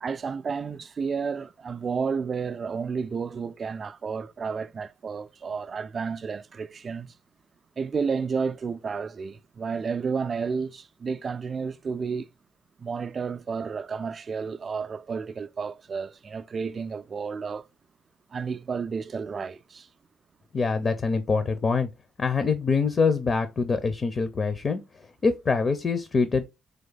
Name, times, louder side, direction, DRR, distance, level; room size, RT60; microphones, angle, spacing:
voice 1, 0.0-7.2 7.8-12.3 12.8-17.7 18.3-19.9, right 5 dB, 45° right, 0.3 m, -31 dB
voice 2, 20.5-21.9 22.2-24.8 25.2-26.4, left 4 dB, 40° left, 0.6 m, -24 dB
3.5 x 3.2 x 3.9 m
cardioid pair, 90°, 0 cm